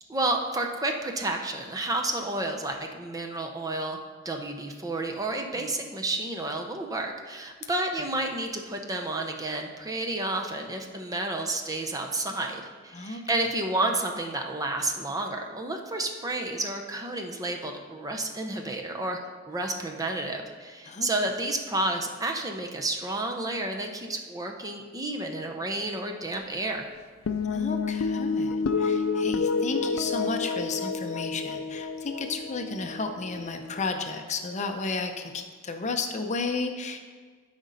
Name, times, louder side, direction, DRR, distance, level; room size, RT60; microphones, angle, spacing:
voice 1, 0.1-4.0 4.2-19.2 19.5-26.9, right 2 dB, 15° right, 3 dB, 0.7 m, -31 dB
sound 1, 27.3-33.8, left 4 dB, 90° left, 0.5 m, -29 dB
voice 2, 27.4-37.0, left 3 dB, 35° left, 5 dB, 0.6 m, -33 dB
12.5 x 5.1 x 4.0 m, 1.5 s
head